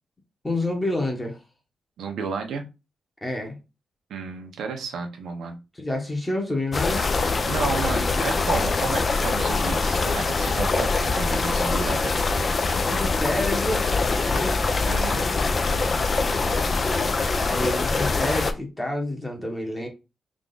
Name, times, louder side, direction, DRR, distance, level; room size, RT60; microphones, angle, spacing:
voice 1, 0.4-1.4 3.2-3.6 5.7-7.0 12.8-13.9 14.2-14.5 17.4-19.9, left 1 dB, 15° left, 1.1 m, -28 dB
voice 2, 2.0-2.6 4.1-5.6 7.5-12.1 14.9-15.2, right 5 dB, 85° right, 0.8 m, -32 dB
sound 1, 6.7-18.5, left 3 dB, 35° left, 0.4 m, -23 dB
3.6 x 2.4 x 3.8 m
wide cardioid pair, 140°, 0 cm